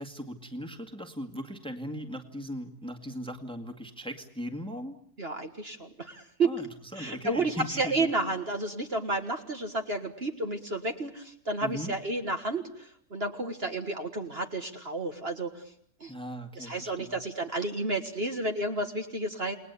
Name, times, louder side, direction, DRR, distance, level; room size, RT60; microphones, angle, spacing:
voice 1, 0.0-5.0 6.4-8.1 11.6-11.9 16.1-17.2, equal, 5° left, 6 dB, 1.9 m, -38 dB
voice 2, 5.2-6.5 7.0-15.6 16.0-16.1 16.6-19.6, right 2 dB, 40° right, 5 dB, 1.9 m, -31 dB
29.0 x 20.5 x 8.3 m, 0.65 s
omnidirectional pair, 1.7 m